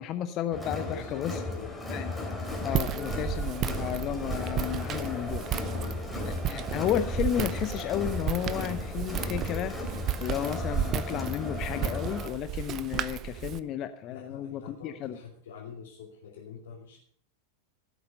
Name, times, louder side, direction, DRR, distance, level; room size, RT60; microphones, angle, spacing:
voice 1, 0.0-1.4 1.9-2.1 2.6-5.5 6.2-15.2, left 11 dB, 35° left, 11 dB, 0.7 m, -33 dB
Crowd, 0.5-12.3, left 2 dB, 5° left, 3.5 m, -35 dB
voice 2, 0.8-1.7 5.7-6.0 14.1-17.0, left 6 dB, 60° left, -3 dB, 2.7 m, -45 dB
Walk footsteps, 2.4-13.6, right 11 dB, 35° right, 0.7 m, -34 dB
16.0 x 8.2 x 5.3 m, 0.62 s
figure-of-eight pair, 90°, 0 cm